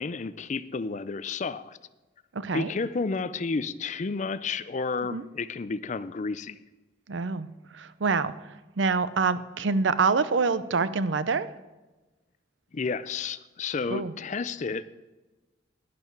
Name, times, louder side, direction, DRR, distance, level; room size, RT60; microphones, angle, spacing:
voice 1, 0.0-1.8 2.5-6.6 12.7-14.8, left 4 dB, 40° left, 15 dB, 0.4 m, -31 dB
voice 2, 2.3-2.7 5.1-5.2 7.1-7.5 7.7-8.3 8.8-11.5 13.9-14.1, right 4 dB, 80° right, 15 dB, 0.6 m, -26 dB
11.0 x 10.5 x 4.6 m, 1.1 s
head